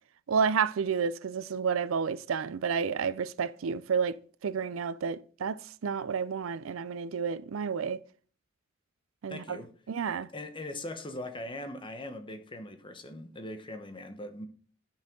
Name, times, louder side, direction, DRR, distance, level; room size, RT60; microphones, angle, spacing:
voice 1, 0.3-4.2 4.4-8.0 9.2-9.6 9.9-10.3, right 6 dB, 85° right, 0.4 m, -30 dB
voice 2, 9.3-9.7 10.3-14.5, left 1 dB, 25° left, 1.0 m, -40 dB
9.8 x 6.1 x 3.7 m
head